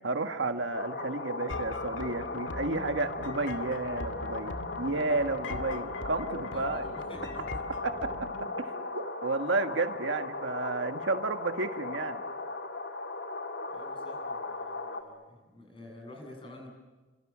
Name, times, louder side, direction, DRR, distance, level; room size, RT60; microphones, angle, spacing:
voice 1, 0.0-6.9 7.8-8.3 8.6-12.2, right 3 dB, 80° right, 6 dB, 1.7 m, -32 dB
sound 1, 0.7-15.0, left 3 dB, 65° left, 2.2 m, -37 dB
sound 2, 1.5-8.4, left 2 dB, 80° left, 2.3 m, -41 dB
voice 2, 6.5-7.5 13.7-16.7, left 1 dB, 30° left, 2 dB, 7.9 m, -49 dB
30.0 x 25.5 x 7.4 m, 1.2 s
head